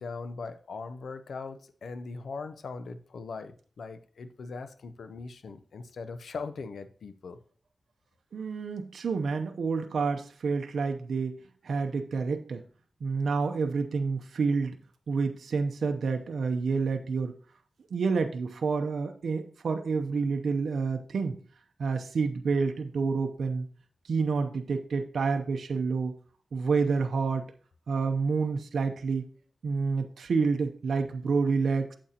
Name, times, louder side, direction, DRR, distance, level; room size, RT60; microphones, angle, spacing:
voice 1, 0.0-7.4, left 4 dB, 85° left, 11 dB, 0.6 m, -40 dB
voice 2, 8.3-11.4 11.6-12.6 13.0-14.8 15.1-17.3 17.9-21.4 21.8-23.7 24.1-26.2 26.5-27.4 27.9-29.3 29.6-31.9, right 4 dB, 85° right, 6 dB, 0.7 m, -28 dB
8.7 x 7.5 x 2.8 m, 0.43 s
cardioid pair, 65°, 0 cm